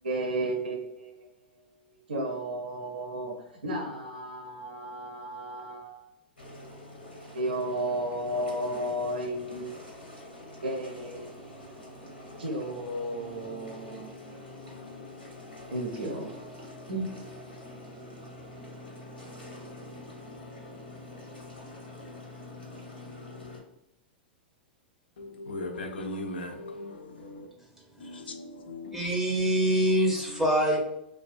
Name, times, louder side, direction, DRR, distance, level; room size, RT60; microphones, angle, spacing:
voice 1, 0.0-1.3 1.5-1.6 2.1-6.1 7.3-10.1 10.6-11.3 12.4-14.6 15.7-16.3 16.9-17.1, right 1 dB, 75° right, 0.5 m, -33 dB
sound 1, 6.4-23.6, left 1 dB, 90° left, 0.8 m, -45 dB
voice 2, 25.2-27.5 28.0-29.1 30.2-30.8, left 2 dB, 75° left, 0.3 m, -39 dB
voice 3, 28.9-30.8, equal, 5° right, 0.5 m, -24 dB
2.3 x 2.2 x 2.4 m
figure-of-eight pair, 100°, 6 cm